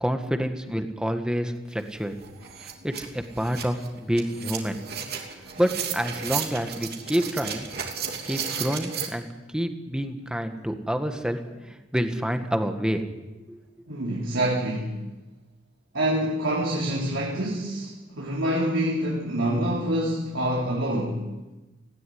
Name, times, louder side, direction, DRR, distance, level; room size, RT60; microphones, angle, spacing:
voice 1, 0.0-2.1 2.6-4.8 5.6-7.7 8.2-13.0 13.5-13.6, equal, 5° right, 6 dB, 1.7 m, -28 dB
sound 1, 1.8-1.9 2.2-9.1, right 7 dB, 55° right, 2.9 m, -34 dB
voice 2, 13.9-15.0 15.9-21.3, right 1 dB, 85° right, -4 dB, 4.1 m, -26 dB
18.5 x 17.0 x 9.6 m, 1.1 s
head